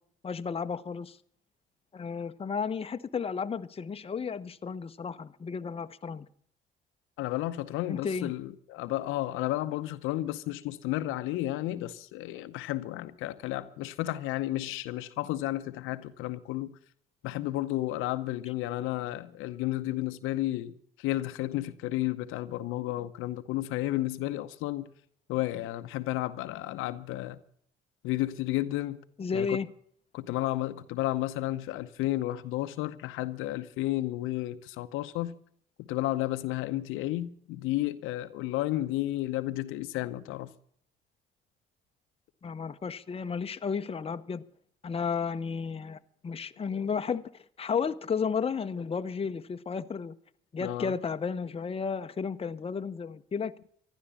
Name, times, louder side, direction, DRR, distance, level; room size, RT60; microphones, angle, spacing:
voice 1, 0.2-1.2 1.9-6.3 7.9-8.3 29.2-29.7 42.4-44.4 44.8-50.2 50.5-53.5, left 6 dB, 25° left, 0.8 m, -33 dB
voice 2, 7.2-16.8 17.2-24.9 25.3-27.4 28.0-29.0 29.3-29.6 30.1-35.3 35.8-40.5 50.6-50.9, left 16 dB, 75° left, 0.8 m, -32 dB
14.5 x 11.5 x 6.9 m
supercardioid pair, 65°, 21 cm